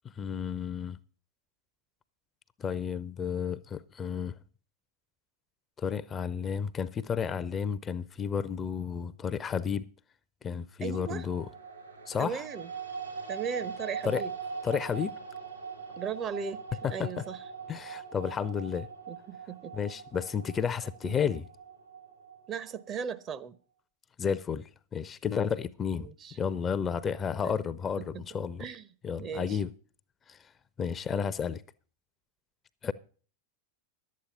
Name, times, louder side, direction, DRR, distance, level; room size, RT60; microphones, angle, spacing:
voice 1, 0.0-1.0 2.6-4.4 5.8-9.9 10.4-11.5 12.1-12.4 14.0-14.2 14.6-15.1 16.8-17.2 17.7-18.9 19.7-21.5 24.2-28.7 29.0-29.7 30.3-30.4 30.8-31.6 32.8-32.9, left 7 dB, 20° left, 0.5 m, -32 dB
voice 2, 10.8-11.3 12.2-12.7 13.3-14.3 16.0-16.6 16.9-17.4 19.1-19.7 21.0-21.1 22.5-23.6 25.9-26.4 27.4-27.6 28.6-28.8 29.2-29.6 31.1-31.3, right 7 dB, 30° right, 0.7 m, -37 dB
sound 1, 10.9-23.1, right 5 dB, 85° right, 3.2 m, -42 dB
11.5 x 8.6 x 5.5 m
figure-of-eight pair, 90°, 0 cm